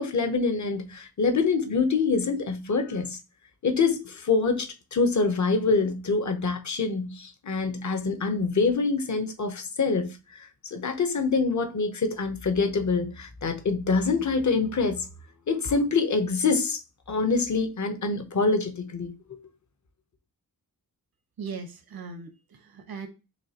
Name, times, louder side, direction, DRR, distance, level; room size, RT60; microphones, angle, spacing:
voice 1, 0.0-3.2 3.6-15.1 15.5-16.8 17.1-19.4, left 4 dB, 50° left, 0.8 m, -25 dB
voice 2, 21.4-23.1, right 5 dB, 75° right, 0.9 m, -39 dB
6.3 x 2.4 x 2.8 m
wide cardioid pair, 75°, 37 cm